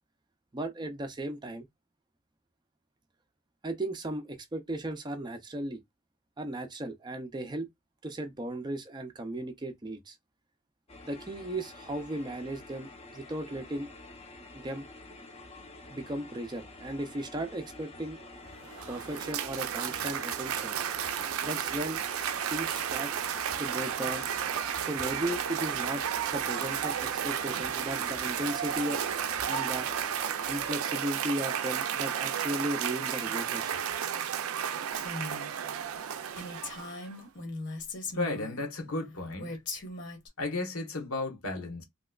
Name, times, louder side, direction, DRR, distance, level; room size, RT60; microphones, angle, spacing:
voice 1, 0.5-1.7 3.6-5.8 6.4-7.7 8.0-10.2 11.1-13.9 14.5-14.8 15.9-18.2 18.9-20.8 21.4-22.0 22.5-23.1 23.6-24.4 24.8-26.0 26.3-29.0 29.5-29.9 30.5-33.8, right 1 dB, 20° right, 0.4 m, -36 dB
sound 1, 10.9-30.7, left 2 dB, 30° left, 0.6 m, -48 dB
Cheering / Applause, 18.5-37.1, right 9 dB, 80° right, 0.4 m, -33 dB
Female speech woman speaking, 34.9-35.5 35.9-36.0 36.3-38.6 39.4-40.3, left 2 dB, 55° left, 1.0 m, -39 dB
voice 2, 38.2-39.6 40.4-41.8, left 2 dB, 80° left, 1.2 m, -34 dB
3.3 x 2.9 x 2.3 m
head